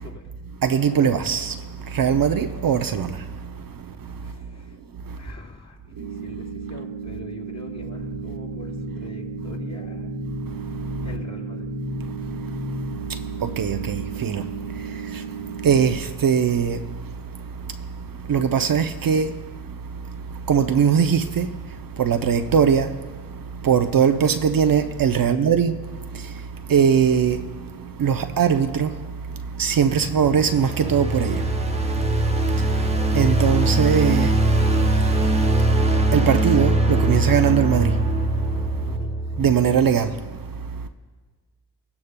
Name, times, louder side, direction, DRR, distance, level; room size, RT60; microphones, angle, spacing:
voice 1, 0.0-0.3 4.2-4.8 5.2-10.1 11.0-11.7 25.2-25.5 38.8-39.1, left 2 dB, 40° left, 3.5 m, -43 dB
voice 2, 0.6-1.5 1.9-3.2 13.6-14.4 15.6-16.8 18.3-19.3 20.5-21.5 22.0-22.9 23.6-25.8 26.7-27.4 28.0-28.9 29.6-31.4 33.1-34.3 36.1-37.9 39.4-40.1, right 7 dB, 50° right, 0.6 m, -20 dB
sound 1, 6.0-16.0, right 6 dB, 65° right, 1.3 m, -35 dB
sound 2, 7.8-12.9, left 3 dB, 70° left, 2.8 m, -35 dB
sound 3, 29.7-39.9, right 2 dB, 15° right, 0.9 m, -22 dB
20.5 x 9.7 x 2.2 m
supercardioid pair, 45°, 44 cm